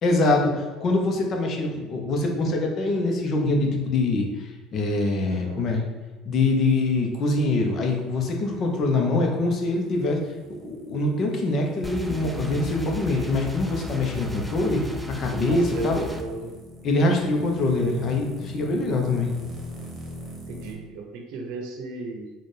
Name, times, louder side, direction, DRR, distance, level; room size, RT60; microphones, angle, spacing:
voice 1, 0.0-5.8 6.2-10.2 10.5-16.0 16.8-19.3, left 2 dB, 45° left, 2 dB, 0.9 m, -24 dB
voice 2, 5.2-5.7 13.0-13.4 15.3-16.5 20.5-22.3, right 4 dB, 70° right, 3 dB, 0.7 m, -36 dB
sound 1, 7.9-20.7, equal, 35° right, 1.0 m, -44 dB
sound 2, 11.8-16.2, left 1 dB, 10° right, 0.4 m, -35 dB
4.0 x 2.5 x 3.4 m, 1.3 s
supercardioid pair, 105°, 0 cm